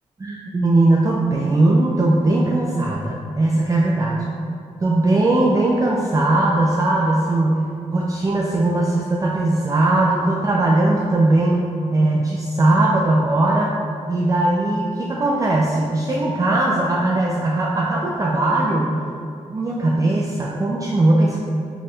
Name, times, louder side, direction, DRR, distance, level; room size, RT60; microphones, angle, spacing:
voice 1, 0.2-4.2 4.8-7.6 7.9-13.7 14.1-19.0 19.5-21.4, right 2 dB, 25° right, -3 dB, 0.4 m, -19 dB
3.2 x 2.3 x 4.3 m, 2.5 s
cardioid pair, 50°, 13 cm